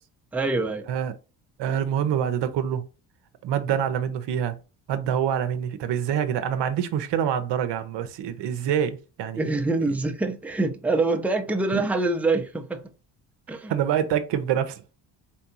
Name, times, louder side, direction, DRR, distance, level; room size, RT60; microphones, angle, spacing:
voice 1, 0.3-0.8 9.4-12.8 13.5-13.7, right 3 dB, 5° right, 0.7 m, -25 dB
voice 2, 1.6-2.8 3.4-4.6 4.9-9.5 11.7-11.8 13.7-14.8, right 9 dB, 65° right, 0.8 m, -26 dB
4.5 x 3.4 x 2.8 m
supercardioid pair, 60°, 47 cm